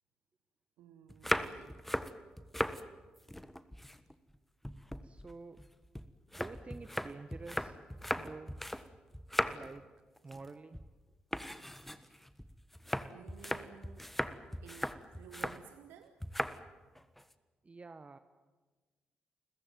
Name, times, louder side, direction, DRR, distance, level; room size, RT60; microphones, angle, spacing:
voice 1, 0.8-1.8 8.0-8.1 9.5-9.6 13.1-14.1 14.6-16.2, right 8 dB, 75° right, 9 dB, 1.0 m, -55 dB
sound 1, 1.1-2.8 3.2-4.4 4.6-8.9 9.1-9.8 10.2-10.5 10.7-10.9 11.3-15.6 16.2-16.6 16.9-17.3, equal, 5° left, 1.4 m, -38 dB
voice 2, 5.0-5.6 6.3-7.8 8.2-8.6 9.5-9.9 10.2-10.8 17.6-18.2, right 3 dB, 35° right, 10 dB, 1.2 m, -48 dB
29.0 x 15.0 x 9.3 m, 1.3 s
hypercardioid pair, 40°, 4 cm